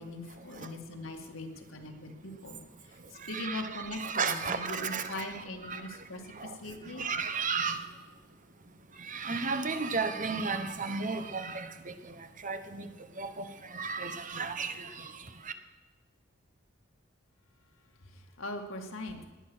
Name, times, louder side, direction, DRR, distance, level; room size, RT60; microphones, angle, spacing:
voice 1, 0.0-2.6 2.9-3.0 3.3-7.1 18.0-19.2, left 2 dB, 85° left, 3 dB, 2.1 m, -41 dB
voice 2, 3.2-5.8 6.4-6.6 7.0-7.8 9.0-11.9 12.4-12.9 13.2-15.1 15.4-15.5, right 4 dB, 40° right, 9 dB, 1.1 m, -34 dB
19.0 x 9.7 x 6.3 m, 1.3 s
head